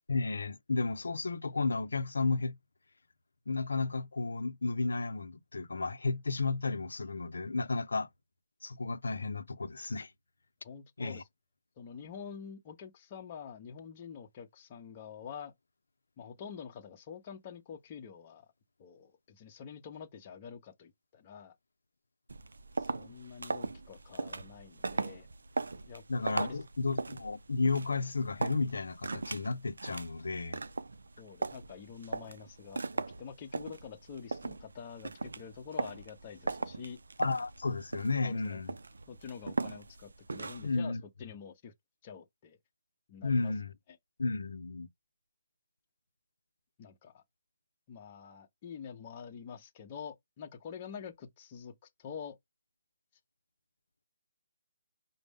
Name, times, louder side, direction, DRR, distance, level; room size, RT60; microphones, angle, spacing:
voice 1, 0.1-2.6 3.5-8.1 8.6-10.1 11.0-11.2 26.1-30.6 37.2-38.7 40.6-41.0 43.2-43.7 44.2-44.9, left 3 dB, 85° left, 0.5 m, -33 dB
voice 2, 10.6-11.3 11.8-15.5 16.2-18.5 18.8-21.5 22.8-25.3 25.9-26.0 26.4-26.6 31.2-37.0 38.2-38.6 39.1-41.7 42.0-42.6 43.1-43.5 46.8-47.2 47.9-52.4, left 7 dB, 25° left, 0.7 m, -47 dB
sound 1, 22.3-40.8, right 3 dB, 85° right, 0.4 m, -39 dB
5.1 x 2.0 x 3.4 m
hypercardioid pair, 165°, 0 cm